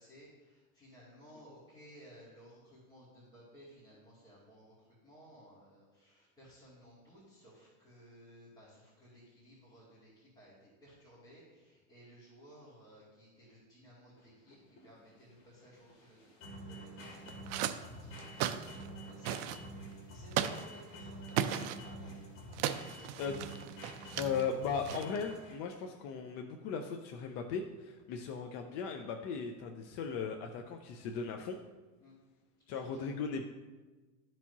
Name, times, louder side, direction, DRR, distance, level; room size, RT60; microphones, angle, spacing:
voice 1, 0.0-16.3 16.6-22.2 22.8-23.3 32.0-32.1 32.6-33.1, equal, 10° left, -12 dB, 2.6 m, -58 dB
sound 1, 14.2-25.8, right 1 dB, 55° left, 2.6 m, -48 dB
sound 2, 17.0-17.8 18.2-18.9 19.2-19.6 20.3-20.7 21.3-21.8 22.5-24.4 24.8-25.2, right 11 dB, 50° right, 0.5 m, -36 dB
voice 2, 24.2-31.6 32.7-33.4, left 5 dB, 35° left, 4 dB, 0.4 m, -37 dB
13.5 x 4.5 x 2.8 m, 1.2 s
supercardioid pair, 150°, 46 cm